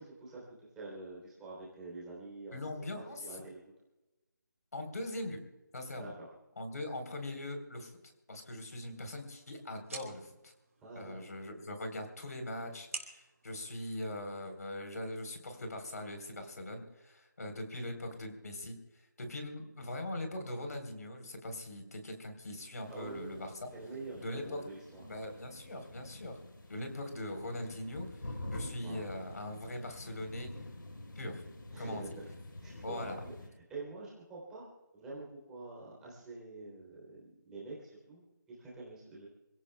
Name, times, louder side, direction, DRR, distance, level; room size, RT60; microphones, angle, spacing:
voice 1, 0.0-3.6 6.0-6.3 10.8-11.1 22.9-23.5 23.7-25.0 28.8-29.0 31.7-32.2 32.6-34.6 34.9-39.3, right 3 dB, 5° right, -6 dB, 3.2 m, -46 dB
voice 2, 2.5-3.2 4.7-5.4 5.7-6.1 6.6-7.9 8.3-10.5 11.0-18.8 19.2-23.7 24.2-24.6 25.0-26.4 26.7-30.5 31.2-31.4 31.8-32.1 32.8-33.2, left 1 dB, 50° left, 5 dB, 3.7 m, -41 dB
sound 1, 8.6-14.6, right 4 dB, 40° right, 3.2 m, -51 dB
sound 2, 22.8-33.5, left 2 dB, 80° left, 3.7 m, -48 dB
27.5 x 17.0 x 2.2 m, 1.0 s
figure-of-eight pair, 170°, 11 cm